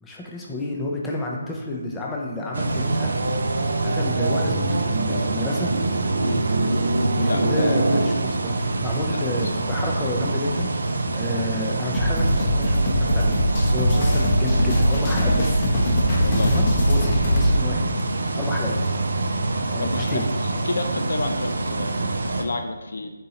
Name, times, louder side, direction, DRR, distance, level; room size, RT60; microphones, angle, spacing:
voice 1, 0.0-3.3 3.8-5.7 7.2-10.7 11.1-15.7 16.2-17.9 18.3-18.7 19.7-20.3, left 1 dB, 10° left, -2 dB, 0.5 m, -30 dB
sound 1, 2.5-22.4, right 2 dB, 65° right, 0.4 m, -25 dB
voice 2, 7.2-7.7 9.0-9.7 16.2-16.6 19.8-23.1, left 2 dB, 70° left, 7 dB, 0.3 m, -30 dB
sound 2, 11.9-17.6, equal, 40° left, 0.8 m, -21 dB
4.1 x 3.7 x 2.8 m, 1.2 s
figure-of-eight pair, 155°, 0 cm